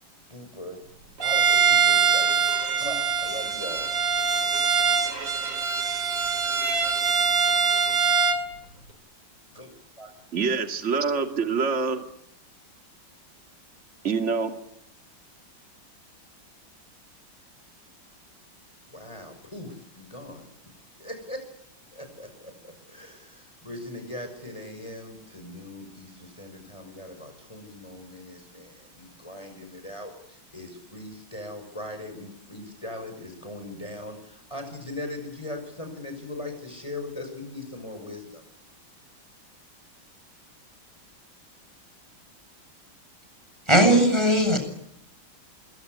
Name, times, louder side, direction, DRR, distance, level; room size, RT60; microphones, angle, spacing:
voice 1, 0.3-0.8 1.2-2.4 2.8-3.9 9.5-9.7 10.0-10.1 18.9-20.5 21.0-21.4 21.9-38.4, left 1 dB, 15° left, 6 dB, 6.1 m, -39 dB
Bowed string instrument, 1.2-8.5, right 6 dB, 70° right, 3.7 m, -23 dB
voice 2, 10.3-12.0 14.0-14.5, right 5 dB, 35° right, 5 dB, 2.5 m, -25 dB
voice 3, 43.7-44.6, right 1 dB, 15° right, 7 dB, 7.6 m, -18 dB
26.5 x 23.0 x 9.6 m, 0.75 s
omnidirectional pair, 2.2 m